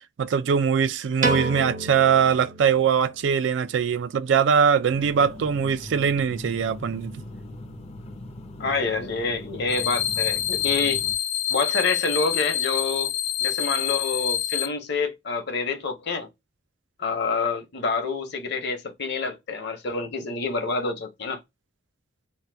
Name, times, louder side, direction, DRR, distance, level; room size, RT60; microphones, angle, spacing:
voice 1, 0.2-7.1, right 7 dB, 70° right, 0.3 m, -22 dB
Piano, 1.2-3.5, right 2 dB, 45° right, 0.7 m, -30 dB
sound 1, 4.9-11.1, left 1 dB, 35° left, 0.5 m, -40 dB
voice 2, 8.6-11.0 11.5-13.1 13.4-16.3 17.0-21.4, left 4 dB, 65° left, 0.9 m, -27 dB
sound 2, 9.7-14.7, left 11 dB, 85° left, 0.7 m, -27 dB
2.8 x 2.2 x 3.3 m
head